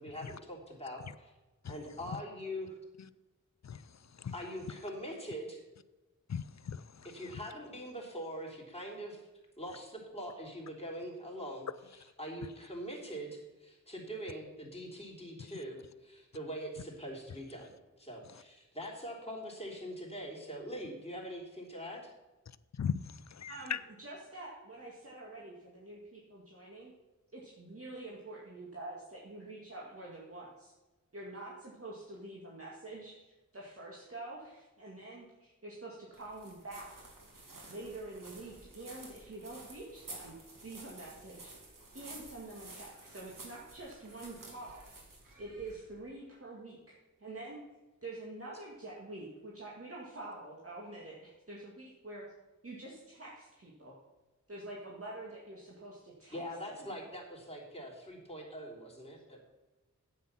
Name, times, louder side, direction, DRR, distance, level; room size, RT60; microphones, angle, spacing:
voice 1, 0.0-1.3 1.7-2.7 4.3-5.6 7.0-9.2 9.6-17.7 18.0-22.1 56.3-59.4, equal, 20° left, 3.5 m, -43 dB
voice 2, 6.3-7.3 22.8-23.8, left 7 dB, 60° left, 0.5 m, -38 dB
voice 3, 23.5-26.9 27.3-30.7 31.1-36.9 37.7-40.3 40.6-41.5 41.9-44.8 45.4-47.6 48.0-52.3 52.6-53.9 54.5-56.4 56.7-56.9, right 2 dB, 45° right, 2.1 m, -46 dB
sound 1, 36.1-46.0, right 2 dB, 85° right, 2.3 m, -52 dB
9.4 x 8.7 x 5.8 m
wide cardioid pair, 55°, 32 cm